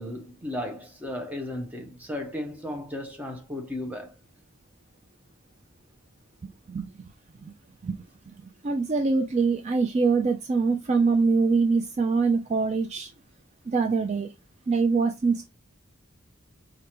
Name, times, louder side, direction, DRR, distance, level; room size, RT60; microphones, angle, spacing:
voice 1, 0.0-4.1, left 1 dB, 10° right, 0.7 m, -35 dB
voice 2, 8.6-13.1 13.7-14.3 14.7-15.4, right 4 dB, 35° right, 0.3 m, -24 dB
4.6 x 2.5 x 2.9 m
head